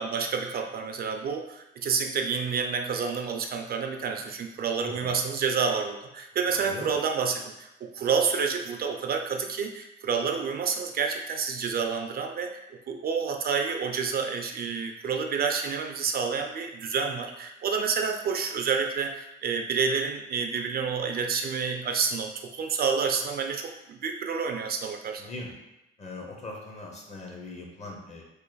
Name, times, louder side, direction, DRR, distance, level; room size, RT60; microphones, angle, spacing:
voice 1, 0.0-7.7 7.9-12.6 12.9-25.2, right 5 dB, 50° right, 4 dB, 0.4 m, -29 dB
voice 2, 4.8-5.1 6.5-7.0 25.2-25.5 26.0-28.2, left 2 dB, 35° left, -1 dB, 0.9 m, -40 dB
3.1 x 2.4 x 3.9 m, 0.94 s
cardioid pair, 90°, 20 cm